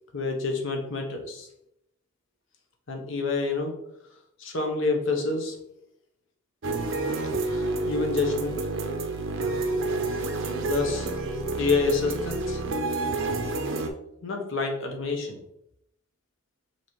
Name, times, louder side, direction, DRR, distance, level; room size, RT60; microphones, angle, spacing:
voice 1, 0.1-1.5 2.9-3.7 4.4-5.6 7.4-8.6 10.7-11.1 11.6-12.6 14.2-15.4, left 3 dB, 65° left, 3 dB, 0.9 m, -28 dB
sound 1, 6.6-13.9, right 2 dB, 65° right, 0.6 m, -29 dB
5.4 x 2.8 x 3.1 m, 0.77 s
head